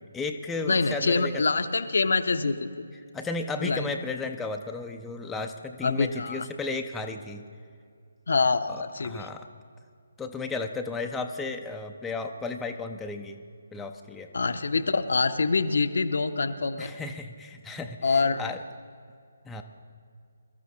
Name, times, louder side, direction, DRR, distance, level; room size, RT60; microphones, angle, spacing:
voice 1, 0.1-1.4 3.1-7.4 8.7-9.5 10.2-13.4 13.7-14.3 16.8-18.6 19.5-19.6, left 3 dB, 5° left, 3 dB, 0.5 m, -34 dB
voice 2, 0.7-2.6 3.6-3.9 5.8-6.5 8.3-9.3 14.3-17.0 18.0-18.4, left 4 dB, 60° left, 9 dB, 0.7 m, -25 dB
22.0 x 13.0 x 2.8 m, 2.3 s
figure-of-eight pair, 145°, 0 cm